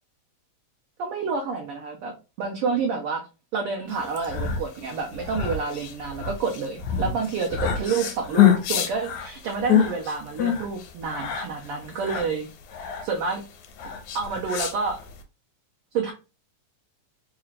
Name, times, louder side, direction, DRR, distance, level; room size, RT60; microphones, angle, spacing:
voice 1, 1.0-3.2 3.5-12.5 13.0-13.4 14.1-15.0 15.9-16.1, right 5 dB, 80° right, 1 dB, 1.3 m, -28 dB
sound 1, 4.0-15.2, left 9 dB, 80° left, 2.0 m, -26 dB
4.7 x 2.4 x 3.2 m, 0.31 s
omnidirectional pair, 3.4 m